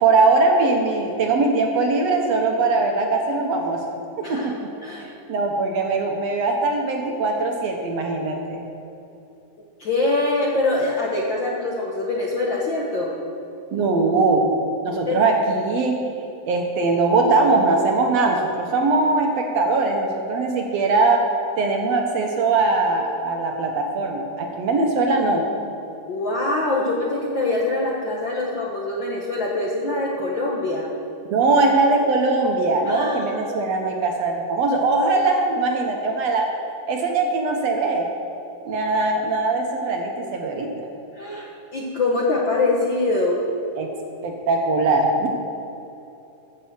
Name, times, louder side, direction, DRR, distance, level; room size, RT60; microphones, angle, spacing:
voice 1, 0.0-3.8 4.2-4.7 5.0-8.6 13.7-14.5 14.8-16.0 16.5-21.2 21.6-25.4 31.3-36.5 36.9-38.1 38.7-40.7 43.8-43.9 44.2-45.3, right 3 dB, 65° right, 2 dB, 1.9 m, -21 dB
voice 2, 4.8-5.1 9.8-13.1 15.1-15.2 26.1-30.9 32.9-33.5 41.1-43.4, left 2 dB, 55° left, -3 dB, 1.3 m, -24 dB
14.5 x 6.6 x 7.4 m, 2.9 s
omnidirectional pair, 3.6 m